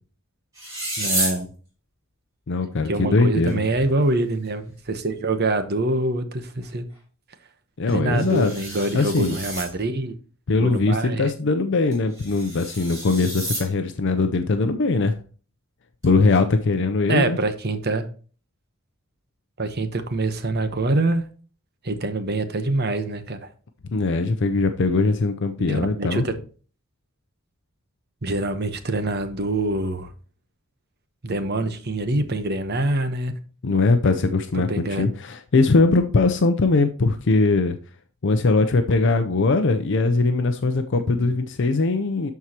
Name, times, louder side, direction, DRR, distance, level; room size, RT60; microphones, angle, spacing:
sound 1, 0.5-1.4 3.5-3.6 3.8-3.9 4.5-4.6 7.9-9.7 11.9-13.7 16.0-16.4, right 1 dB, 15° right, 3.6 m, -30 dB
voice 1, 1.0-1.5 2.9-6.9 7.9-10.2 10.6-11.3 17.1-18.1 19.6-21.2 21.8-23.5 25.7-26.3 28.2-30.1 31.2-33.4 34.7-35.1 40.9-41.3, right 2 dB, 50° right, 1.0 m, -25 dB
voice 2, 2.5-3.6 7.8-8.5 8.9-9.4 10.5-15.2 16.0-17.4 23.9-26.3 33.6-37.8 38.2-42.3, left 3 dB, 60° left, 0.6 m, -21 dB
12.5 x 4.7 x 2.9 m
head